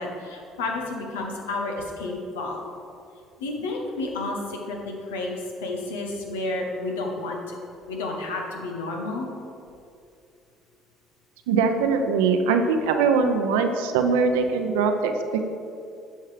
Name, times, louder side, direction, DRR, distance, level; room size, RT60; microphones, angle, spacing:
voice 1, 0.0-2.6 3.4-7.6 7.9-9.3, left 2 dB, 85° left, 0 dB, 1.3 m, -31 dB
voice 2, 11.5-15.4, right 5 dB, 80° right, 5 dB, 0.7 m, -22 dB
9.5 x 5.7 x 5.0 m, 2.5 s
hypercardioid pair, 60°, 0 cm